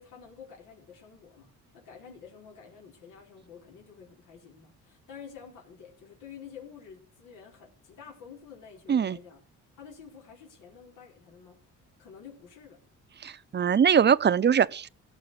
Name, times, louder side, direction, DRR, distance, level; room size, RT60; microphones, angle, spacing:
voice 1, 0.0-9.4 9.8-11.6 12.0-12.8, left 7 dB, 90° left, 4.7 m, -49 dB
voice 2, 13.2-14.9, right 7 dB, 35° right, 0.7 m, -22 dB
17.5 x 6.4 x 8.5 m
cardioid pair, 90°, 30 cm